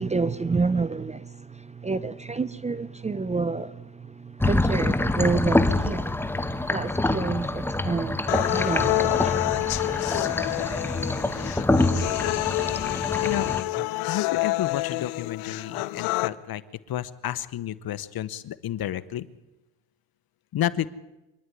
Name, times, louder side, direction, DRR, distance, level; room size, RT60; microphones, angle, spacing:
voice 1, 0.0-3.8 4.2-6.1 6.7-9.4, right 4 dB, 15° right, 0.6 m, -29 dB
sound 1, 4.4-13.6, left 2 dB, 5° left, 1.1 m, -26 dB
sound 2, 8.3-16.3, left 20 dB, 90° left, 0.8 m, -27 dB
voice 2, 14.0-16.6 16.9-19.3 20.5-20.9, left 11 dB, 50° left, 1.2 m, -31 dB
25.5 x 11.0 x 9.9 m
cardioid pair, 95°, 45 cm